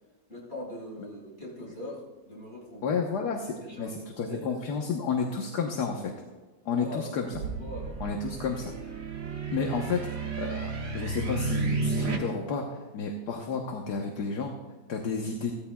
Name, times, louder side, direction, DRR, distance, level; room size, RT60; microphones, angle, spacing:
voice 1, 0.3-3.0 3.6-4.6 6.6-7.1 7.5-8.0, left 1 dB, 35° left, -4 dB, 4.9 m, -41 dB
voice 2, 2.8-6.1 6.6-7.3 8.0-8.7 9.5-10.0 10.4-12.7 12.9-14.5 14.9-15.5, left 5 dB, 65° left, 2 dB, 1.6 m, -31 dB
sound 1, 7.2-12.2, right 3 dB, 90° right, 2.2 m, -32 dB
sound 2, 7.3-10.3, right 4 dB, 60° right, 1.5 m, -41 dB
16.5 x 14.5 x 2.3 m, 1.2 s
omnidirectional pair, 1.9 m